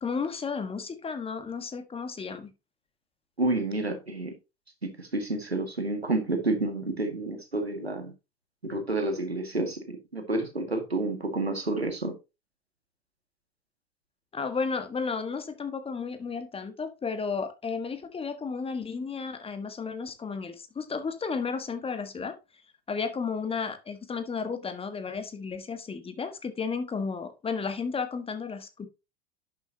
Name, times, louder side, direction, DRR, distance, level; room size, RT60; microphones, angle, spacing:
voice 1, 0.0-2.5 14.3-22.4 22.9-28.9, left 5 dB, 20° left, 1.5 m, -33 dB
voice 2, 3.4-4.4 4.8-8.1 8.6-12.2, right 2 dB, 90° right, 2.0 m, -29 dB
11.0 x 7.1 x 2.8 m
figure-of-eight pair, 80°, 31 cm